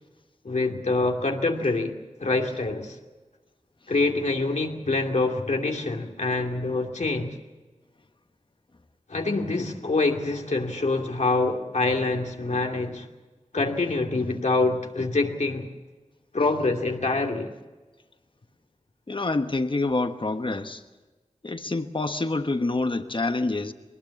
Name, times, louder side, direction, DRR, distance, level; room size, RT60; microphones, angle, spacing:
voice 1, 0.4-1.9 2.2-3.0 3.9-7.4 9.1-13.1 13.5-15.7 16.3-17.5, left 3 dB, 75° left, 2 dB, 2.6 m, -25 dB
voice 2, 19.1-20.8 21.4-23.7, left 2 dB, 45° left, 8 dB, 1.3 m, -27 dB
22.5 x 19.5 x 7.2 m, 1.2 s
wide cardioid pair, 60°, 12 cm